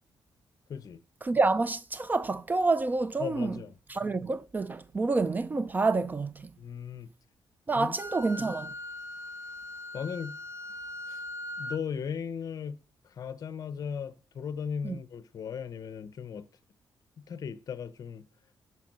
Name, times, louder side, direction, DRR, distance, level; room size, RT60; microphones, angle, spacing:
voice 1, 0.7-1.0 3.2-3.7 6.6-7.1 7.8-8.0 9.9-10.4 11.1-11.2 11.6-12.8 13.2-16.4 17.3-18.2, left 7 dB, 50° left, 0.8 m, -37 dB
voice 2, 1.2-3.6 3.9-6.5 7.7-8.7 14.8-15.0, right 3 dB, 20° right, 0.3 m, -28 dB
Wind instrument woodwind instrument, 8.0-11.8, left 1 dB, 40° right, 1.7 m, -40 dB
11.5 x 4.7 x 6.2 m
wide cardioid pair, 145°, 8 cm